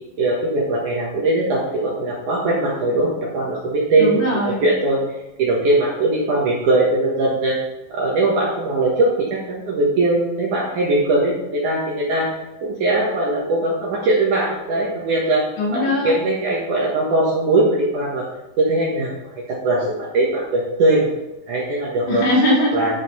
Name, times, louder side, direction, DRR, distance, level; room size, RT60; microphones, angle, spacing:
voice 1, 0.2-4.1 4.4-5.0 5.4-7.6 7.9-12.3 12.6-15.5 15.7-18.2 18.6-19.2 19.5-21.1 21.5-22.2 22.7-22.9, right 2 dB, 65° right, -4 dB, 2.0 m, -20 dB
voice 2, 3.9-4.7 15.6-16.1 22.1-23.0, left 1 dB, 70° left, -3 dB, 4.6 m, -20 dB
11.0 x 4.9 x 5.4 m, 1.0 s
omnidirectional pair, 5.5 m